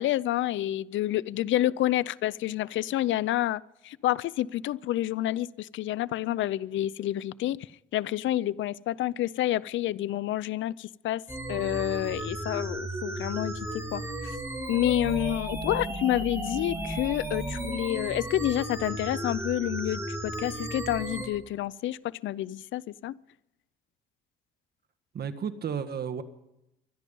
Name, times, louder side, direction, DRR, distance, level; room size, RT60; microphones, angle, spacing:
voice 1, 0.0-11.2 11.5-14.4 14.7-23.2, left 14 dB, 75° left, 0.5 m, -29 dB
sound 1, 11.3-21.3, right 1 dB, 15° right, 6.3 m, -34 dB
voice 2, 25.1-26.2, right 7 dB, 50° right, 1.6 m, -33 dB
24.0 x 10.5 x 5.4 m
cardioid pair, 90°, 20 cm